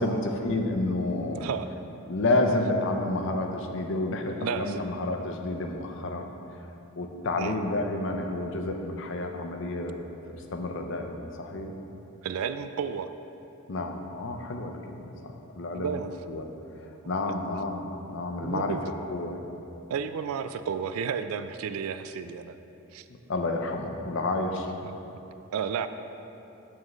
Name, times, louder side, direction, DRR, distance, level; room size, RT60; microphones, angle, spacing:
voice 1, 0.0-1.5 2.1-6.3 7.0-11.7 13.7-16.0 16.3-16.4 17.1-18.8 19.1-19.4 23.3-24.7, left 2 dB, 60° left, 4 dB, 0.5 m, -30 dB
voice 2, 1.3-1.7 4.4-4.8 7.4-7.6 12.2-13.1 15.7-16.1 18.4-18.8 19.9-22.6 22.9-23.0 24.8-24.9 25.5-25.9, right 7 dB, 75° right, 11 dB, 0.3 m, -32 dB
7.3 x 6.3 x 3.1 m, 2.9 s
head